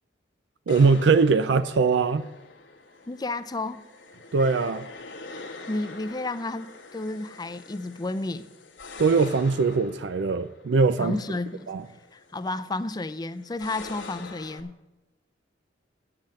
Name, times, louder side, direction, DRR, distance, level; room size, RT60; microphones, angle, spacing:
sound 1, 0.7-14.6, left 3 dB, 80° left, 1.4 m, -45 dB
voice 1, 0.7-2.2 4.3-4.9 9.0-11.2 11.7-11.8, right 4 dB, 70° right, 12 dB, 0.4 m, -21 dB
voice 2, 3.1-3.9 5.7-8.5 11.0-11.7 12.1-14.7, left 2 dB, 20° left, 12 dB, 0.5 m, -32 dB
8.8 x 7.5 x 7.8 m, 1.0 s
head